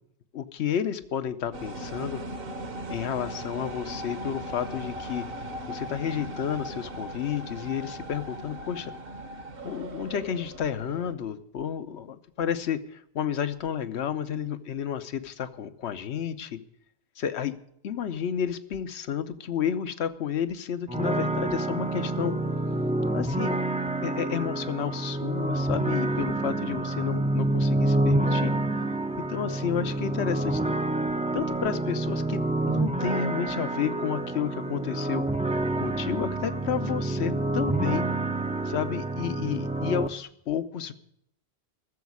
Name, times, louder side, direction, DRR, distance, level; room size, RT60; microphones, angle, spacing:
voice 1, 0.3-2.2 2.9-5.3 5.7-8.9 9.6-16.6 17.2-17.5 17.8-22.4 23.1-23.5 24.0-28.5 29.2-30.6 31.3-35.2 35.8-38.1 38.6-40.9, left 8 dB, 85° left, 12 dB, 1.1 m, -31 dB
sound 1, 1.5-11.1, right 1 dB, 60° right, 1.3 m, -38 dB
sound 2, 20.9-40.1, right 2 dB, 10° right, 0.3 m, -28 dB
14.0 x 7.2 x 9.5 m, 0.72 s
omnidirectional pair, 1.1 m